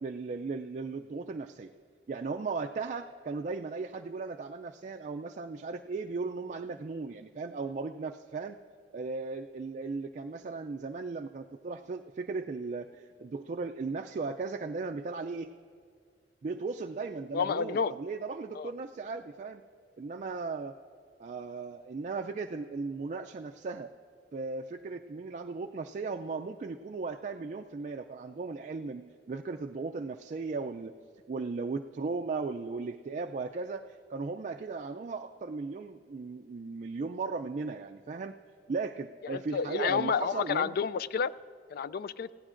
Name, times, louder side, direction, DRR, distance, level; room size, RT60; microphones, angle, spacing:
voice 1, 0.0-1.7 2.1-8.6 8.9-15.5 16.4-19.6 20.0-20.8 21.2-23.9 24.3-30.9 31.3-38.4 38.7-40.7, right 4 dB, 45° right, 5 dB, 0.3 m, -36 dB
voice 2, 17.3-17.9 18.5-18.7 39.3-41.3 41.7-42.3, left 6 dB, 55° left, 17 dB, 0.3 m, -30 dB
27.5 x 16.0 x 2.5 m, 2.2 s
head